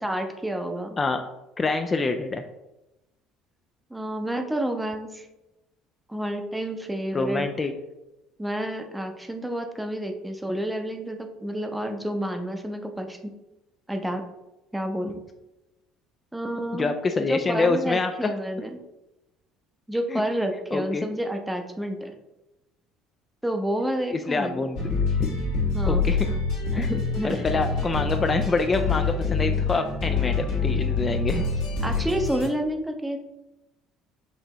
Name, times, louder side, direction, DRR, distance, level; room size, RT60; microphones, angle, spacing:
voice 1, 0.0-1.0 3.9-5.3 6.1-7.5 8.4-13.2 13.9-14.2 14.7-15.2 16.3-16.9 17.3-18.8 19.9-22.1 23.4-24.6 25.7-26.1 26.7-27.5 31.8-33.2, right 1 dB, 10° right, 5 dB, 0.7 m, -29 dB
voice 2, 1.6-2.4 7.1-7.7 16.7-18.3 20.1-20.2 20.7-21.1 24.1-25.3 25.9-26.3 26.8-26.9 27.2-31.4, left 3 dB, 30° left, 6 dB, 0.3 m, -26 dB
sound 1, 24.8-32.5, left 4 dB, 75° left, 1.5 m, -26 dB
5.4 x 2.7 x 3.0 m, 0.96 s
hypercardioid pair, 65°, 0 cm